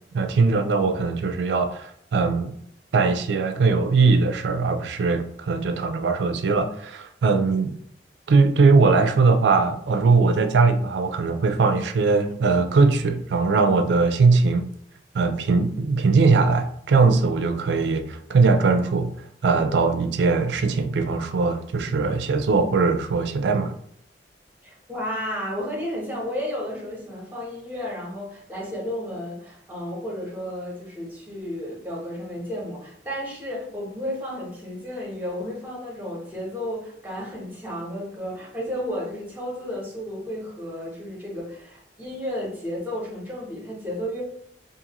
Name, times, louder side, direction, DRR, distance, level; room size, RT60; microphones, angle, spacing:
voice 1, 0.1-2.5 2.9-7.7 8.3-14.7 15.1-19.1 19.4-23.7, right 4 dB, 70° right, 0.4 m, -20 dB
voice 2, 24.6-44.2, equal, 10° right, 0.9 m, -32 dB
2.5 x 2.5 x 2.9 m
head